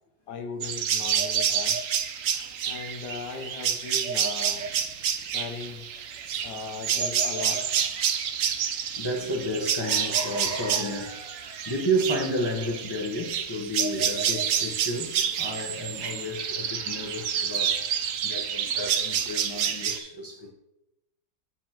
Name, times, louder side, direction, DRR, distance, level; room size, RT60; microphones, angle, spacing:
voice 1, 0.3-1.8 2.6-4.7 5.3-5.9 6.4-7.8, left 5 dB, 70° left, 1.3 m, -38 dB
sound 1, 0.6-20.0, right 8 dB, 65° right, 0.8 m, -28 dB
voice 2, 2.4-2.7 9.0-17.8 18.2-20.5, equal, 25° left, 0.6 m, -32 dB
7.7 x 7.2 x 2.9 m
omnidirectional pair, 1.9 m